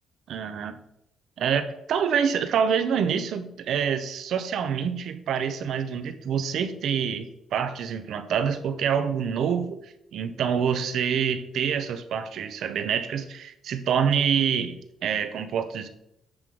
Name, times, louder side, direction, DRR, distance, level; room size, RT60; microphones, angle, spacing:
voice 1, 0.3-0.8 1.4-15.9, right 7 dB, 70° right, 10 dB, 0.8 m, -26 dB
9.8 x 3.8 x 4.9 m, 0.80 s
cardioid pair, 90°, 0 cm